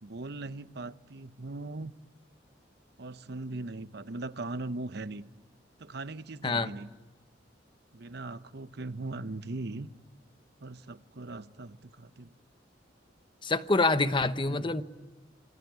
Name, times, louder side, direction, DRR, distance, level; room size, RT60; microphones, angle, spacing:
voice 1, 0.0-1.9 3.0-5.2 5.8-6.9 7.9-9.9 10.6-12.3 14.5-14.7, right 2 dB, 60° right, 0.8 m, -39 dB
voice 2, 13.4-14.8, left 3 dB, 25° left, 0.9 m, -26 dB
27.0 x 22.5 x 9.4 m
head